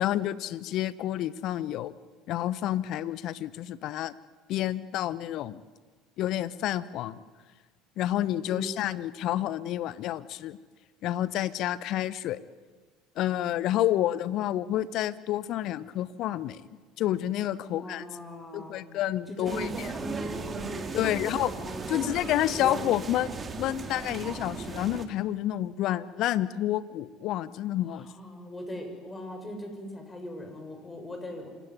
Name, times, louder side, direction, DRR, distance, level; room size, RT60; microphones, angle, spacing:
voice 1, 0.0-1.9 2.3-4.1 4.5-5.6 6.2-7.2 8.0-10.6 11.0-12.4 13.2-16.7 17.0-18.0 18.5-19.9 20.9-21.5 21.9-28.1, left 13 dB, 55° left, 18 dB, 0.9 m, -29 dB
voice 2, 17.6-18.8 19.3-22.1 22.5-22.7 27.8-31.5, equal, 20° left, 4 dB, 6.8 m, -40 dB
sound 1, 19.4-25.1, right 4 dB, 30° right, 2.6 m, -37 dB
26.5 x 16.5 x 9.8 m, 1.4 s
figure-of-eight pair, 65°, 0 cm